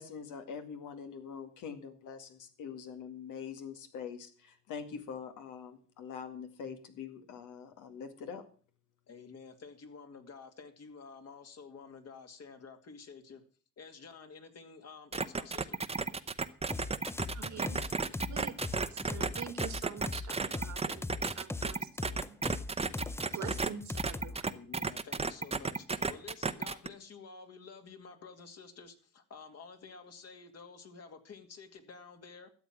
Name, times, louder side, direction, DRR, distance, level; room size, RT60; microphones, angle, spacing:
voice 1, 0.0-8.4, left 6 dB, 85° left, 2.1 m, -44 dB
voice 2, 9.1-13.4 13.8-15.8 24.4-32.5, left 5 dB, 55° left, 2.4 m, -50 dB
sound 1, 15.1-23.7 24.0-26.9, right 4 dB, 20° right, 0.8 m, -33 dB
sound 2, 16.7-24.4, left 3 dB, 10° left, 0.5 m, -39 dB
voice 3, 17.3-22.4 23.3-24.6, right 8 dB, 70° right, 1.8 m, -46 dB
13.0 x 7.6 x 7.4 m
cardioid pair, 90°, 30 cm